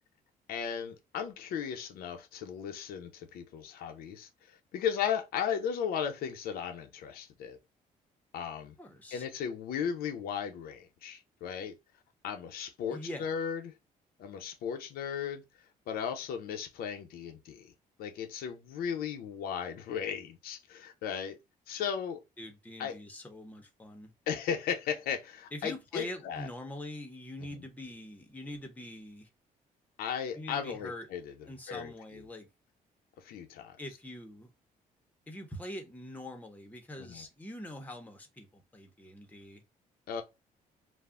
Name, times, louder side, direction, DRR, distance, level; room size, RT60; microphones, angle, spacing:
voice 1, 0.5-7.6 8.3-8.7 9.1-11.8 12.2-13.7 14.2-15.4 15.9-17.7 18.0-21.4 21.7-22.2 22.8-23.0 24.3-26.5 27.5-27.7 30.0-31.3 31.7-32.2 33.2-33.8 37.0-37.3 40.1-40.2, left 8 dB, 85° left, 0.6 m, -36 dB
voice 2, 8.8-9.2 12.9-13.3 22.4-24.1 25.5-29.3 30.3-31.1 31.5-32.5 33.8-34.5 35.3-39.6, left 1 dB, 10° left, 0.7 m, -44 dB
2.3 x 2.0 x 3.5 m
cardioid pair, 110°, 15 cm